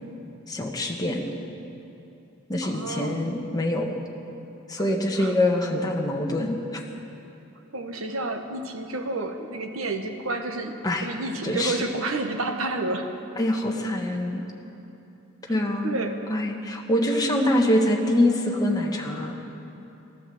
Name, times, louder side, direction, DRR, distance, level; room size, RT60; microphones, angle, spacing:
voice 1, 0.5-1.2 2.5-4.0 4.7-6.8 10.8-11.1 11.4-11.8 13.4-14.4 15.5-16.0 16.3-19.4, left 1 dB, 20° left, -1 dB, 1.4 m, -24 dB
voice 2, 2.6-3.2 5.2-5.3 7.7-13.1 15.8-16.2, right 2 dB, 80° right, 5 dB, 1.3 m, -30 dB
16.0 x 11.5 x 7.8 m, 3.0 s
head